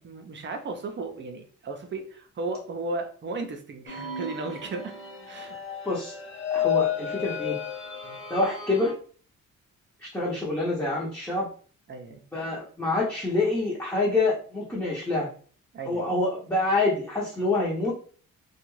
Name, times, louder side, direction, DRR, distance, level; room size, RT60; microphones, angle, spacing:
voice 1, 0.0-5.0 5.3-5.6 6.5-6.7 8.0-8.2 11.9-12.2 15.7-16.1, right 3 dB, 40° right, 5 dB, 0.6 m, -35 dB
sound 1, 3.9-8.9, left 9 dB, 40° left, 0.8 m, -32 dB
voice 2, 5.8-6.2 6.5-7.6 8.3-8.9 10.0-11.5 12.3-15.3 15.9-17.9, left 2 dB, 10° left, -6 dB, 0.8 m, -26 dB
2.4 x 2.3 x 3.1 m, 0.43 s
cardioid pair, 90°, 30 cm